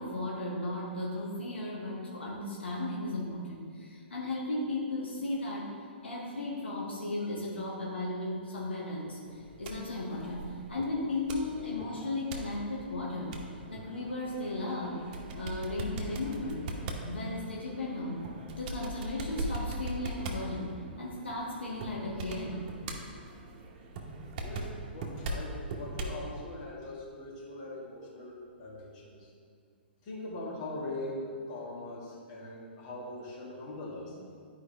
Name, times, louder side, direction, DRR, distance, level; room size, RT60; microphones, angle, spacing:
voice 1, 0.0-5.7 6.0-13.3 13.7-15.0 15.3-16.7 17.0-18.2 18.6-22.6, left 2 dB, 75° left, -4 dB, 1.3 m, -35 dB
sound 1, 9.3-26.2, right 2 dB, 40° right, 1.0 m, -41 dB
voice 2, 24.4-29.3 30.0-34.2, left 2 dB, 40° left, -4 dB, 1.9 m, -41 dB
11.5 x 4.8 x 3.4 m, 2.1 s
figure-of-eight pair, 115°, 6 cm